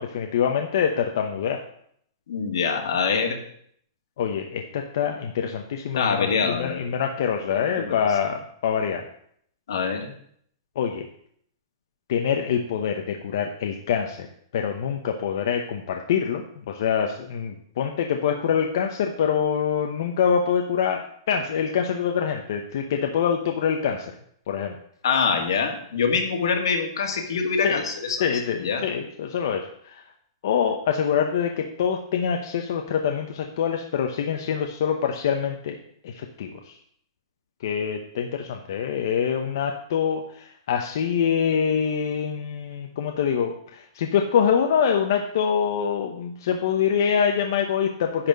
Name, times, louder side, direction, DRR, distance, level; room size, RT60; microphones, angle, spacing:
voice 1, 0.0-1.6 4.2-9.0 10.8-11.1 12.1-14.3 14.5-24.1 24.5-24.7 27.6-27.8 28.2-30.0 30.4-35.8 36.0-36.7 37.6-48.3, left 7 dB, 55° left, 3 dB, 0.9 m, -25 dB
voice 2, 2.3-3.4 6.0-6.8 7.5-8.0 9.7-10.1 25.0-28.3 28.6-28.8, left 5 dB, 80° left, 3 dB, 2.1 m, -24 dB
10.5 x 4.4 x 7.6 m, 0.66 s
supercardioid pair, 175°, 2 cm